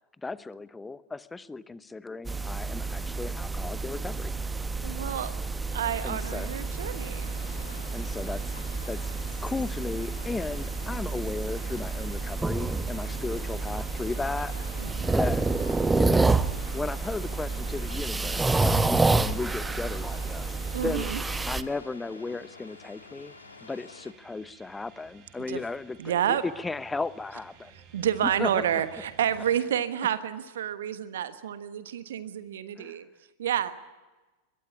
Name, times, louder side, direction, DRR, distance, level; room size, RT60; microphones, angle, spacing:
voice 1, 0.2-4.3 6.0-6.5 7.9-8.5 8.9-9.1 9.4-14.5 15.0-15.4 15.9-16.3 16.7-21.1 21.5-23.3 23.6-27.7 28.2-28.6 32.8-33.0, left 3 dB, 10° left, 17 dB, 0.9 m, -35 dB
sound 1, 2.2-21.6, right 3 dB, 10° right, 1.0 m, -29 dB
voice 2, 4.8-5.3 5.7-7.3 14.8-15.2 20.7-21.2 25.5-25.6 26.0-26.4 27.9-33.1 33.4-33.7, right 10 dB, 60° right, 12 dB, 1.3 m, -29 dB
sound 2, 6.0-24.1, left 4 dB, 75° left, 2.1 m, -49 dB
sound 3, 12.9-29.6, right 6 dB, 40° right, 6.9 m, -56 dB
24.0 x 21.5 x 8.4 m, 1.2 s
figure-of-eight pair, 90°, 0 cm